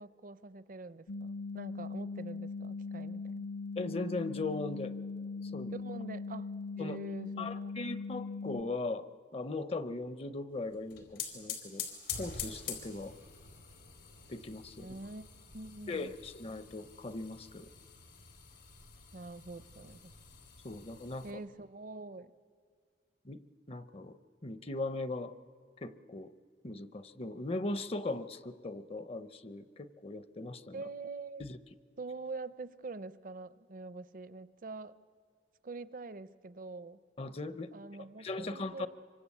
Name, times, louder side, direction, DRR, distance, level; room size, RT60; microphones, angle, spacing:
voice 1, 0.0-3.5 5.7-6.5 6.7-7.7 14.8-15.3 15.5-16.1 19.1-20.1 21.2-22.3 30.7-31.4 32.0-34.9 35.6-37.0 37.7-38.9, right 3 dB, 50° right, 15 dB, 0.7 m, -45 dB
sound 1, 1.1-8.6, left 4 dB, 70° left, 0.7 m, -40 dB
voice 2, 3.8-5.0 5.4-5.7 6.8-7.0 7.4-11.9 12.2-13.2 14.3-14.9 15.9-17.7 20.6-21.3 23.2-23.4 23.7-25.4 25.8-26.3 26.6-30.8 31.4-31.6 37.2-37.7 38.2-38.9, left 2 dB, 35° left, 14 dB, 0.7 m, -39 dB
sound 2, 10.7-21.3, left 7 dB, 90° left, 4.5 m, -46 dB
26.0 x 24.5 x 8.4 m, 2.1 s
head